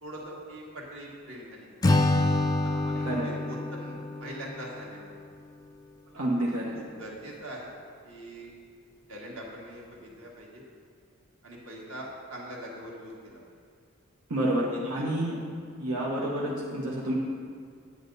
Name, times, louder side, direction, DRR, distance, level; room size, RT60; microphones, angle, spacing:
voice 1, 0.0-1.7 2.6-5.1 6.1-7.7 8.0-8.5 9.1-10.6 11.4-13.4 14.8-15.2, right 1 dB, 65° right, -3 dB, 1.9 m, -43 dB
Acoustic guitar / Strum, 1.8-5.1, left 2 dB, 15° left, 0.4 m, -27 dB
voice 2, 3.0-3.3 6.1-6.8 14.3-15.4 15.8-17.1, right 1 dB, 90° right, -4 dB, 1.2 m, -29 dB
9.5 x 8.6 x 4.0 m, 2.1 s
head